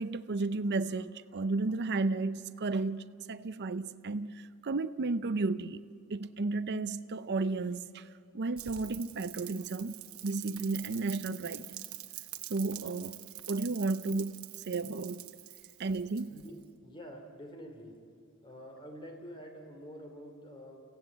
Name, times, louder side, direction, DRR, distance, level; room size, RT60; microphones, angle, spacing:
voice 1, 0.0-5.8 6.1-8.1 8.3-11.8 12.5-13.2 13.5-15.3 15.8-16.4, right 3 dB, 50° right, 0.6 m, -33 dB
Rain, 8.6-16.6, right 14 dB, 70° right, 1.2 m, -46 dB
voice 2, 16.3-18.0 18.4-20.8, equal, 25° left, 3.1 m, -47 dB
28.5 x 15.5 x 8.3 m
head